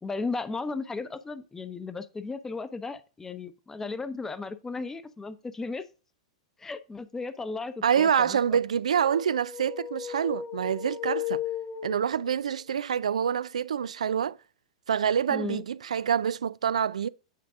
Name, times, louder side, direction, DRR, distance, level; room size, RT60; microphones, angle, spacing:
voice 1, 0.0-5.9 6.6-8.4 15.3-15.6, left 3 dB, 10° left, 0.7 m, -35 dB
voice 2, 7.8-11.4 11.8-14.4 14.9-17.1, right 8 dB, 80° right, 0.3 m, -26 dB
sound 1, 8.9-12.5, left 10 dB, 30° left, 1.3 m, -36 dB
8.5 x 4.6 x 3.6 m
hypercardioid pair, 110°, 4 cm